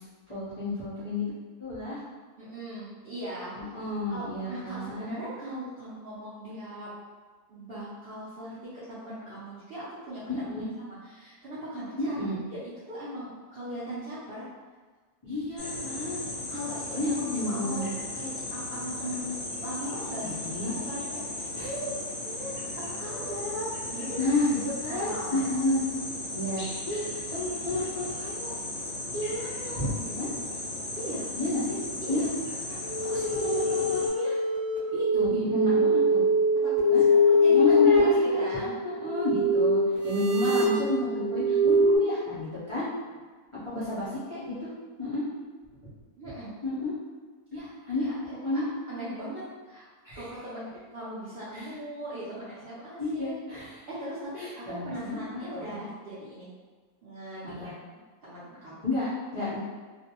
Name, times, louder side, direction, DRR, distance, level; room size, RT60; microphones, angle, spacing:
voice 1, 0.3-1.2 1.6-2.0 3.6-5.1 10.3-10.7 12.0-12.4 15.2-16.2 16.9-17.9 20.2-20.7 21.6-21.7 23.1-23.4 24.2-25.8 26.3-28.5 29.1-30.3 31.4-31.8 32.1-32.3 32.7-32.8 33.1-34.4 34.9-36.2 36.9-37.1 37.5-42.9 43.6-44.7 45.0-45.2 46.6-46.9 47.5-48.1 48.4-48.7 50.0-50.2 51.5-51.7 53.0-53.8 54.3-55.8 57.4-57.7 58.8-59.1 59.3-59.6, left 2 dB, 55° left, -12 dB, 0.3 m, -31 dB
voice 2, 2.4-3.7 4.1-6.9 7.5-10.3 11.0-14.5 16.5-17.8 18.2-22.7 23.0-24.4 24.9-25.5 31.0-31.3 32.0-32.3 36.6-36.7 37.1-38.7 46.2-46.5 48.0-48.1 48.5-48.6 48.9-49.8 50.1-53.3 53.9-56.5 57.0-57.7 58.2-58.8 59.4-59.5, right 1 dB, 65° right, -11 dB, 0.6 m, -39 dB
sound 1, 15.6-34.1, left 2 dB, 70° left, 0.7 m, -36 dB
sound 2, 32.8-42.0, left 1 dB, 15° right, 0.7 m, -23 dB
2.5 x 2.1 x 2.8 m, 1.4 s
omnidirectional pair, 1.6 m